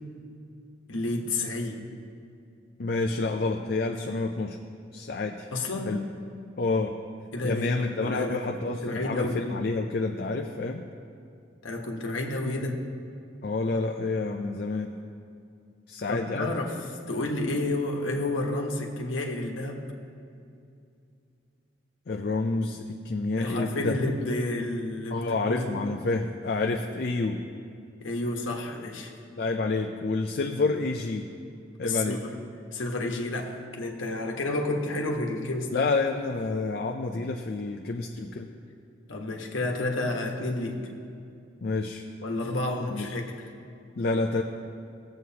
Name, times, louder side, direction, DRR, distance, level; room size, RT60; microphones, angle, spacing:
voice 1, 0.9-1.8 5.5-6.0 7.3-8.5 8.8-9.4 11.6-12.8 16.1-19.8 23.4-25.7 28.0-29.1 31.8-32.3 32.7-35.8 39.1-40.8 42.2-43.3, left 2 dB, 90° left, 1 dB, 1.2 m, -30 dB
voice 2, 2.8-4.6 4.9-5.5 5.8-6.0 6.6-6.9 7.4-10.8 13.4-14.9 15.9-16.5 22.1-24.0 25.1-27.4 29.4-31.3 31.8-32.2 35.7-38.5 41.6-42.0 42.9-43.1 44.0-44.4, left 3 dB, 55° left, 3 dB, 0.4 m, -28 dB
18.0 x 7.8 x 2.8 m, 2.5 s
head